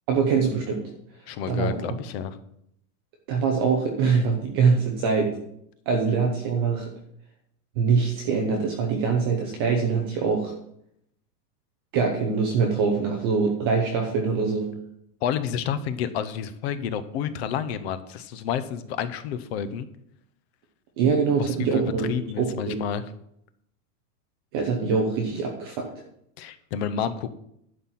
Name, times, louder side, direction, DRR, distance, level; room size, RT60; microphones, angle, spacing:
voice 1, 0.1-0.8 1.5-1.7 3.3-5.3 5.9-6.9 7.8-10.5 11.9-14.7 21.0-22.1 22.4-22.8 24.5-25.9, right 5 dB, 15° right, 1 dB, 0.4 m, -23 dB
voice 2, 1.3-2.4 15.2-19.9 21.4-23.0 26.4-27.3, left 8 dB, 40° left, 12 dB, 0.7 m, -30 dB
11.0 x 4.3 x 7.4 m, 0.74 s
supercardioid pair, 160°, 48 cm